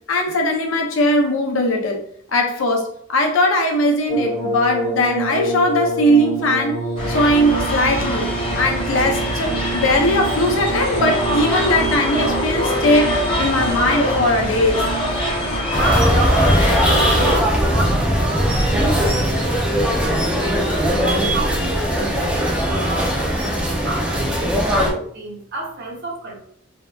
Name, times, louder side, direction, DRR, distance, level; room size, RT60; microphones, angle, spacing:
voice 1, 0.1-2.0 2.3-6.8 7.1-8.3 8.5-14.8, left 1 dB, 75° left, 3 dB, 0.5 m, -19 dB
sound 1, 4.1-19.3 20.2-20.9 22.3-22.5, right 2 dB, 90° right, 1.2 m, -28 dB
sound 2, 7.0-17.4, left 1 dB, 25° left, 0.7 m, -23 dB
voice 2, 15.6-19.6 20.2-23.5 23.8-26.5, right 2 dB, 55° right, -1 dB, 0.7 m, -30 dB
sound 3, 15.7-24.9, equal, 5° right, 0.4 m, -19 dB
2.6 x 2.2 x 2.3 m, 0.63 s
head